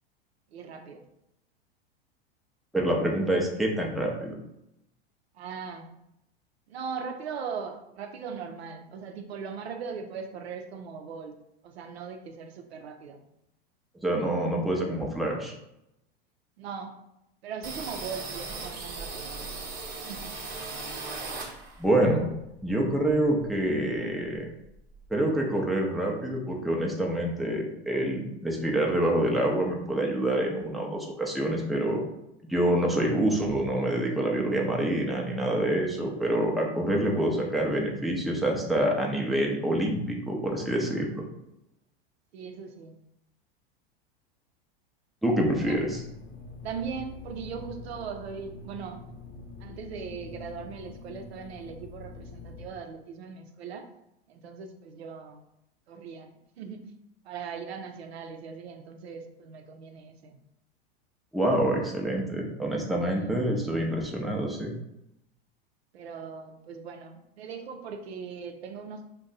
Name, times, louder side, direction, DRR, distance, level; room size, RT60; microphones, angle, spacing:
voice 1, 0.5-1.1 5.3-5.9 6.7-11.3 11.6-13.2 16.6-17.0 17.4-19.5 20.0-20.3 42.3-43.0 45.6-45.8 46.6-49.0 49.6-53.9 54.3-55.4 55.9-56.9 57.2-60.4 63.1-63.4 65.9-69.1, right 6 dB, 80° right, 5 dB, 0.5 m, -39 dB
voice 2, 2.7-4.3 14.0-15.5 21.8-22.3 22.6-24.5 25.1-32.0 32.5-41.2 45.2-46.0 61.3-64.7, right 1 dB, ahead, -1 dB, 0.5 m, -26 dB
sound 1, 17.6-22.0 22.3-23.7 24.0-24.1 24.3-25.1, right 3 dB, 30° right, 0.9 m, -38 dB
sound 2, 45.6-52.7, left 4 dB, 40° left, 0.7 m, -45 dB
2.6 x 2.2 x 3.9 m, 0.83 s
hypercardioid pair, 100°, 31 cm